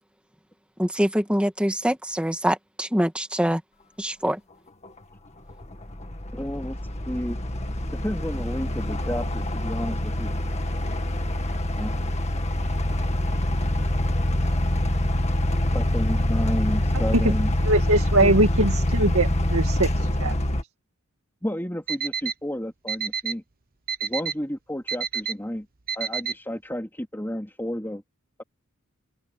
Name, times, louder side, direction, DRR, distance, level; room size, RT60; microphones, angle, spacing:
voice 1, 0.8-3.6 4.0-4.4, equal, 5° right, 2.0 m, -24 dB
sound 1, 4.9-5.0 5.5-20.6, left 1 dB, 30° left, 2.0 m, -25 dB
voice 2, 6.3-6.8 7.0-7.4 8.0-10.3 11.8-12.3 15.7-17.5 18.2-18.5 21.4-23.4 24.0-25.7 25.9-28.0, equal, 10° left, 3.2 m, -31 dB
voice 3, 17.1-20.3, right 2 dB, 75° right, 2.1 m, -22 dB
Alarm, 21.9-22.3 22.9-23.3 23.9-24.3 24.9-25.3 25.9-26.3, right 7 dB, 40° right, 1.1 m, -27 dB
open air
head